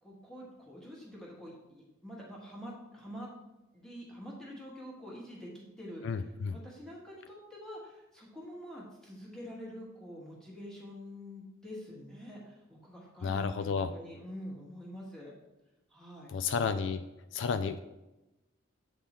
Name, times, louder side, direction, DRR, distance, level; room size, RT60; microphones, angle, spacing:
voice 1, 0.0-3.3 3.7-15.3 15.9-16.3, equal, 5° left, -4 dB, 1.4 m, -46 dB
voice 2, 6.0-6.6 13.2-13.9 16.3-17.0 17.3-17.8, left 5 dB, 65° left, 11 dB, 0.3 m, -31 dB
7.9 x 3.6 x 4.2 m, 0.99 s
head